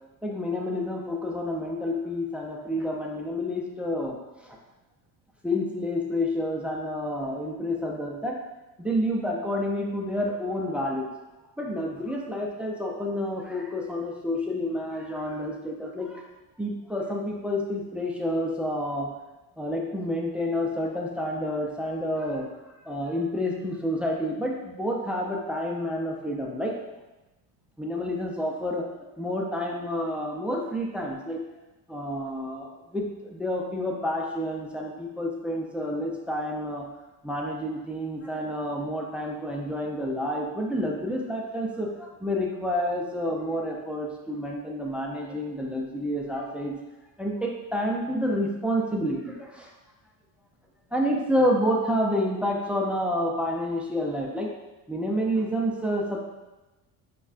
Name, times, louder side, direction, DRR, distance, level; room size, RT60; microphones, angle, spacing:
voice 1, 0.2-4.2 4.4-4.6 5.4-8.4 8.8-11.1 11.6-16.2 16.6-19.1 19.6-26.7 27.8-31.4 31.9-36.9 37.2-46.7 47.2-49.7 50.9-54.5 54.9-56.2, equal, 5° right, -1 dB, 0.3 m, -29 dB
5.3 x 2.3 x 2.4 m, 1.1 s
cardioid pair, 105°, 43 cm